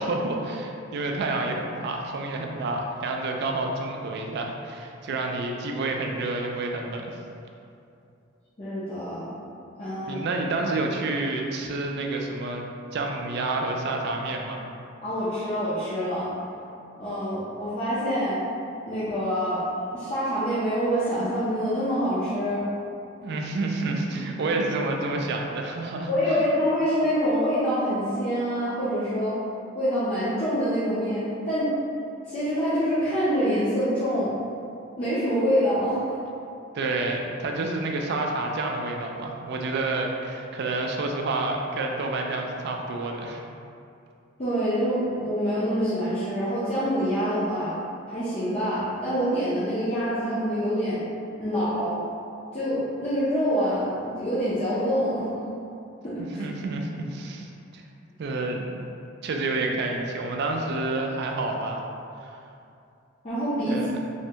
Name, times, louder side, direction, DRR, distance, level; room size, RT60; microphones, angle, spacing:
voice 1, 0.0-7.1 10.0-12.6 12.9-14.6 23.2-26.4 36.7-43.4 56.4-57.8 58.2-58.9 59.2-61.8 62.2-62.4 63.7-63.9, right 2 dB, 55° right, 1 dB, 0.3 m, -29 dB
voice 2, 8.6-9.3 9.8-10.3 15.0-16.3 16.9-18.4 18.9-19.6 19.9-22.6 26.1-29.4 29.7-31.7 32.3-34.3 35.0-36.1 44.4-47.7 48.1-51.0 51.4-52.0 52.5-55.3 56.0-56.4 63.2-64.0, equal, 30° left, -13 dB, 0.5 m, -26 dB
3.3 x 2.1 x 2.8 m, 2.6 s
head